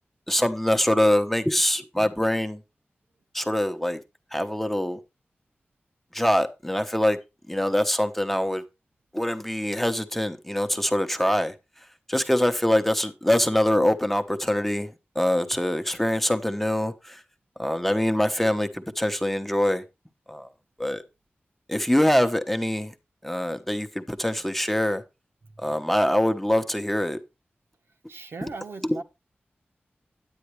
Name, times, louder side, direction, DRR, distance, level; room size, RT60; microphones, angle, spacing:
voice 1, 0.3-2.6 3.3-4.0 4.3-5.0 6.1-7.2 7.5-8.6 9.1-11.5 12.1-17.2 17.6-19.8 20.3-20.5 20.8-21.0 21.7-22.9 23.2-25.0 25.6-27.2 28.9-29.0, left 1 dB, 5° left, 1.0 m, -24 dB
voice 2, 28.1-29.0, right 3 dB, 80° right, 1.3 m, -38 dB
9.8 x 9.2 x 3.2 m
wide cardioid pair, 95°, 4 cm